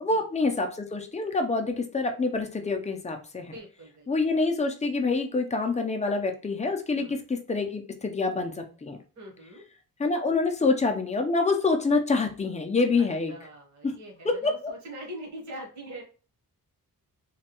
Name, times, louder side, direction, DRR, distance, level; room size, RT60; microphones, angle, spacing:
voice 1, 0.0-3.5 4.1-9.0 10.0-13.3 13.8-13.9 14.2-14.7, left 3 dB, 20° left, 4 dB, 0.4 m, -26 dB
voice 2, 3.5-4.3 6.9-7.2 9.2-9.6 10.6-10.7 13.3-16.0, right 1 dB, 50° right, -1 dB, 1.1 m, -43 dB
3.1 x 2.2 x 2.9 m, 0.36 s
wide cardioid pair, 140°, 36 cm